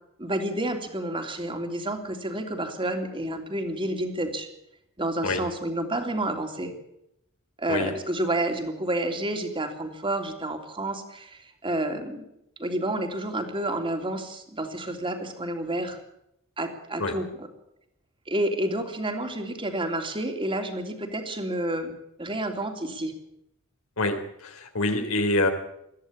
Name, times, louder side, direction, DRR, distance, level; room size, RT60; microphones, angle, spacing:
voice 1, 0.2-4.5 5.0-6.7 7.6-12.3 12.6-16.0 16.6-17.5 18.3-21.9 22.2-23.1, right 1 dB, 25° right, 5 dB, 3.2 m, -30 dB
voice 2, 24.0-25.5, left 2 dB, 75° left, 5 dB, 3.6 m, -26 dB
21.5 x 14.5 x 8.7 m, 0.80 s
head